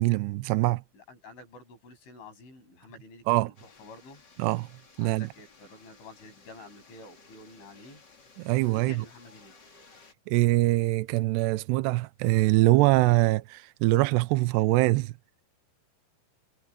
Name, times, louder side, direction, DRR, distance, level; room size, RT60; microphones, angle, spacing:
voice 1, 0.0-0.8 3.3-3.5 4.4-4.7 5.0-5.3 8.4-9.0 10.3-15.1, right 20 dB, 85° right, 2.5 m, -23 dB
voice 2, 0.9-4.2 5.0-8.0 8.7-9.5, left 2 dB, 90° left, 10.0 m, -49 dB
sound 1, 3.6-10.1, left 4 dB, 30° left, 2.7 m, -56 dB
omnidirectional pair, 5.3 m